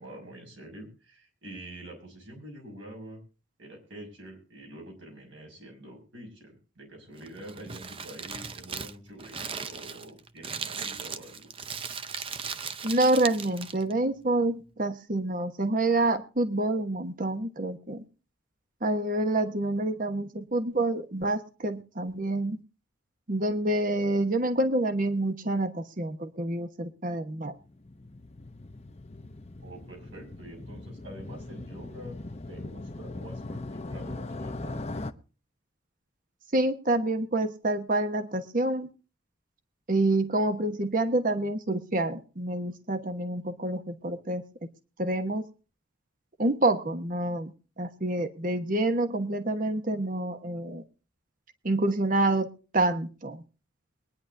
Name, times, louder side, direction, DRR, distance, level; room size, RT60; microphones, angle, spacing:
voice 1, 0.0-3.2 3.6-11.5 29.6-32.2 32.5-34.8, right 1 dB, 75° right, 1 dB, 5.9 m, -46 dB
Crumpling crinkling, 7.1-13.9, right 6 dB, 30° right, 0.6 m, -38 dB
voice 2, 12.8-18.0 18.8-22.6 23.3-27.5 36.5-38.9 39.9-44.7 45.0-45.5 46.4-50.8 51.6-52.5 52.7-53.4, right 2 dB, 45° right, 8 dB, 1.1 m, -27 dB
Motorcycle, 27.6-35.1, left 2 dB, 35° left, 0.8 m, -40 dB
23.0 x 10.0 x 2.7 m, 0.34 s
head